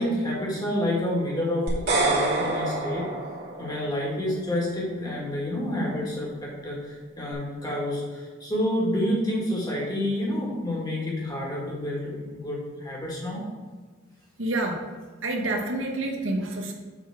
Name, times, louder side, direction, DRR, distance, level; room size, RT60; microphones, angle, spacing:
voice 1, 0.0-3.0 3.6-13.5, left 1 dB, 20° left, -4 dB, 2.0 m, -29 dB
sound 1, 1.7-4.0, right 2 dB, 50° right, 2.4 m, -26 dB
voice 2, 14.4-14.9 15.2-16.7, right 2 dB, 70° right, 1 dB, 1.1 m, -28 dB
7.1 x 4.0 x 6.0 m, 1.5 s
head